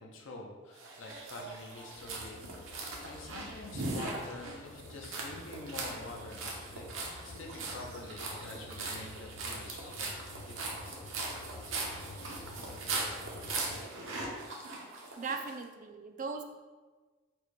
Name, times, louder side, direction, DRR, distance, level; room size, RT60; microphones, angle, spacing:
voice 1, 0.0-2.5 2.7-6.9 7.2-10.2 10.5-11.0, left 2 dB, 85° left, 0 dB, 0.7 m, -47 dB
sound 1, 0.8-15.5, right 3 dB, 85° right, 0.8 m, -40 dB
sound 2, 2.0-13.8, left 2 dB, 55° left, 0.3 m, -50 dB
voice 2, 15.2-16.4, right 4 dB, 40° right, 6 dB, 0.3 m, -38 dB
4.3 x 2.2 x 4.6 m, 1.3 s
head